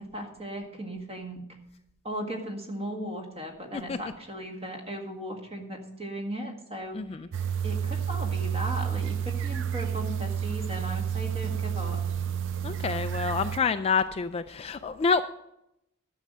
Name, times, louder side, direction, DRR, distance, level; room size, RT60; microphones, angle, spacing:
voice 1, 0.0-1.4 2.0-7.0 7.6-12.0, right 1 dB, 30° right, 2 dB, 1.9 m, -37 dB
voice 2, 6.9-7.3 12.6-15.2, left 5 dB, 25° left, 10 dB, 0.3 m, -27 dB
sound 1, 7.3-13.6, right 8 dB, 55° right, 0.5 m, -30 dB
11.5 x 6.4 x 6.7 m, 0.82 s
head